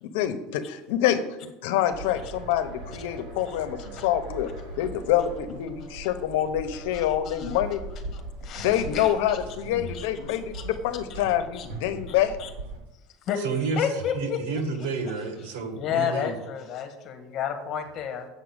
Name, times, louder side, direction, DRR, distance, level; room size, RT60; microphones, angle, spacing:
voice 1, 0.0-4.5 4.8-7.8 8.6-12.4, left 11 dB, 85° left, 10 dB, 1.0 m, -26 dB
sound 1, 1.9-12.8, right 2 dB, 70° right, 3.4 m, -40 dB
voice 2, 3.5-4.1 6.9-7.6 8.1-9.4 9.9-10.6 11.5-11.7 12.1-12.5 13.3-13.4 13.8-14.4 14.8-15.1 15.8-18.3, left 8 dB, 45° left, 7 dB, 1.7 m, -32 dB
voice 3, 13.4-13.9 14.1-16.4, right 4 dB, 90° right, 6 dB, 1.7 m, -30 dB
8.0 x 6.3 x 8.0 m, 1.0 s
cardioid pair, 145°, 0 cm